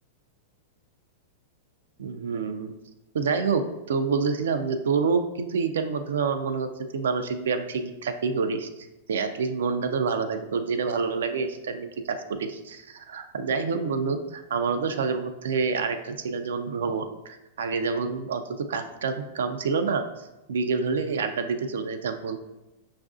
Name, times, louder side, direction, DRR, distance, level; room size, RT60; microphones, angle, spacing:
voice 1, 2.0-2.7 3.1-8.7 9.1-20.0 20.5-22.4, right 5 dB, 85° right, 7 dB, 0.3 m, -27 dB
5.3 x 2.4 x 2.4 m, 0.97 s
hypercardioid pair, 135°, 0 cm